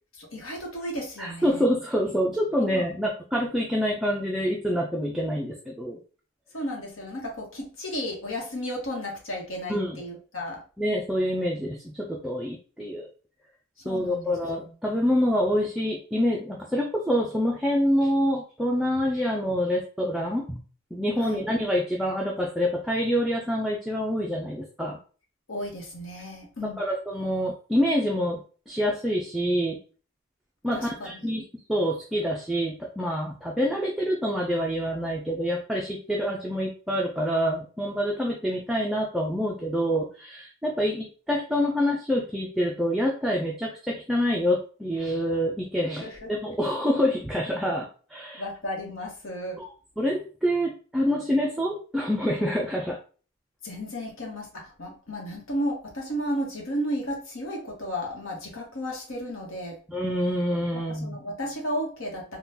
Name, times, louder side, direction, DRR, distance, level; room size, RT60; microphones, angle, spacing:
voice 1, 0.1-1.7 2.6-2.8 6.5-10.6 13.8-14.3 14.9-15.0 21.2-21.4 25.5-26.8 30.7-31.2 46.0-46.5 48.4-49.6 53.6-59.8 60.9-62.4, equal, 70° left, 0 dB, 1.1 m, -33 dB
voice 2, 1.2-6.0 9.7-10.0 10.8-13.1 13.8-20.6 20.9-25.0 26.6-28.4 28.7-29.8 30.6-48.4 49.6-49.7 50.0-53.0 59.9-61.2, equal, ahead, -2 dB, 0.3 m, -26 dB
3.7 x 2.3 x 2.7 m, 0.38 s
head